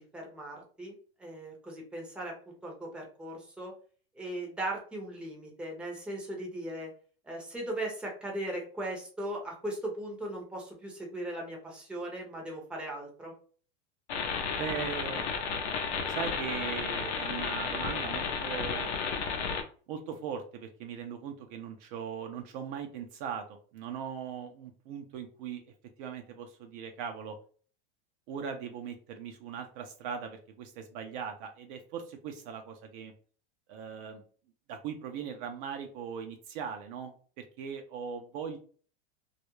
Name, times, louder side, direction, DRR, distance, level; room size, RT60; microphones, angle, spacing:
voice 1, 0.1-0.9 1.2-2.3 2.6-3.7 4.2-6.9 7.2-13.3, right 1 dB, 5° right, -1 dB, 0.6 m, -38 dB
sound 1, 14.1-19.6, left 5 dB, 90° left, 0.6 m, -33 dB
voice 2, 14.6-15.3 16.1-18.9 19.9-23.4 23.7-25.6 26.0-27.4 28.3-33.1 33.7-34.2 34.7-38.6, right 7 dB, 55° right, 5 dB, 0.5 m, -39 dB
2.3 x 2.0 x 2.9 m, 0.42 s
supercardioid pair, 130°, 32 cm